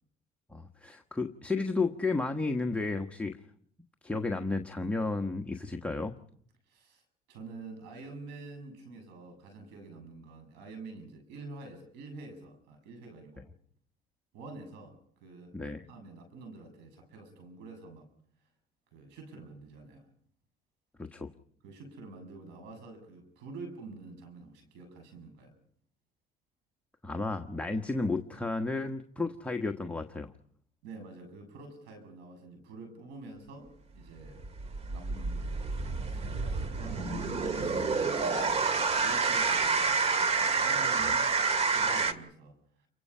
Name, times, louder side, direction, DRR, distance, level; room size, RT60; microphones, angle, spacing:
voice 1, 0.5-3.4 4.0-6.2 15.5-15.9 21.0-21.3 27.0-30.3, left 3 dB, 10° left, 3 dB, 1.4 m, -32 dB
voice 2, 6.7-7.0 7.3-13.5 14.3-15.6 15.9-18.1 18.9-20.1 21.6-25.5 30.8-34.5 34.9-42.9, right 3 dB, 85° right, 7 dB, 7.5 m, -47 dB
sound 1, 34.3-42.1, right 4 dB, 40° right, 2.2 m, -28 dB
29.5 x 24.0 x 5.7 m, 0.65 s
cardioid pair, 100°, 17 cm